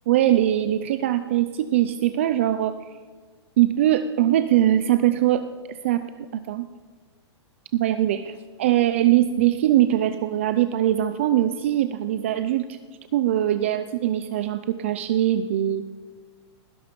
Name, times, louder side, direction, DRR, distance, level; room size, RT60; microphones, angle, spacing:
voice 1, 0.1-2.8 3.6-6.7 7.7-12.8 13.1-15.8, right 12 dB, 25° right, 11 dB, 0.4 m, -22 dB
19.5 x 11.5 x 5.2 m, 1.5 s
hypercardioid pair, 175°, 15 cm